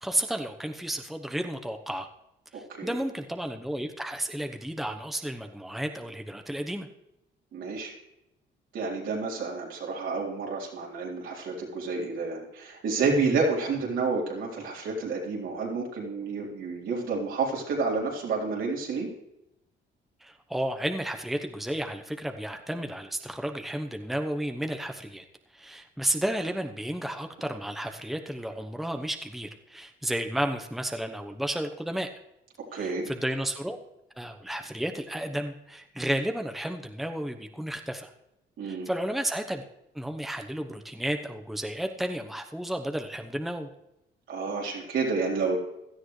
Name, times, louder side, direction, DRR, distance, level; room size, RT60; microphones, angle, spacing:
voice 1, 0.0-2.1 2.5-6.9 20.2-25.2 25.5-32.1 32.7-33.8 34.2-38.1 38.6-39.6 39.9-43.7, right 1 dB, ahead, 5 dB, 1.0 m, -32 dB
voice 2, 2.5-3.0 7.5-7.9 8.7-19.1 32.7-33.0 38.6-38.9 44.3-45.6, right 4 dB, 75° right, -2 dB, 3.9 m, -30 dB
16.5 x 12.5 x 3.3 m, 0.88 s
cardioid pair, 90°, 20 cm